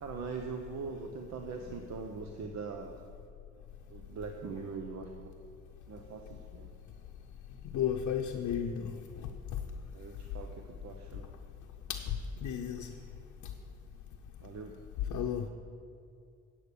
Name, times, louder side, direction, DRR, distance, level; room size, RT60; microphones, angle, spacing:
voice 1, 0.0-2.9 3.9-5.3 5.9-6.7 9.9-11.3 14.4-14.8, right 5 dB, 65° right, 4 dB, 0.8 m, -42 dB
voice 2, 7.7-8.9 11.9-12.0 12.4-12.9 15.1-15.5, left 8 dB, 75° left, 1 dB, 0.7 m, -33 dB
8.5 x 8.3 x 6.8 m, 2.5 s
cardioid pair, 90°, 30 cm